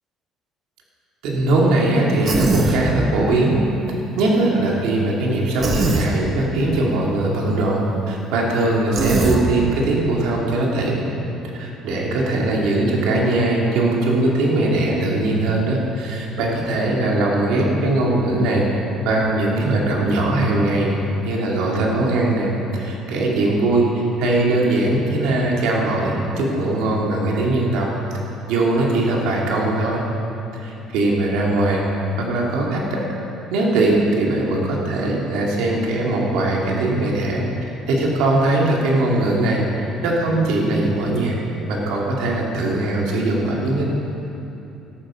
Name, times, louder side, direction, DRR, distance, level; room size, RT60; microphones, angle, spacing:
voice 1, 1.2-3.6 4.2-11.0 11.6-18.7 19.0-20.9 21.2-23.9 24.2-27.9 28.5-30.0 30.5-31.8 32.2-33.0 33.5-37.4 37.9-41.4 41.7-43.8, right 2 dB, 85° right, -2 dB, 2.4 m, -20 dB
Human voice, 2.2-2.8 5.6-6.1 9.0-9.4, right 3 dB, 35° right, 1.2 m, -20 dB
12.5 x 9.5 x 6.3 m, 2.9 s
cardioid pair, 155°, 0 cm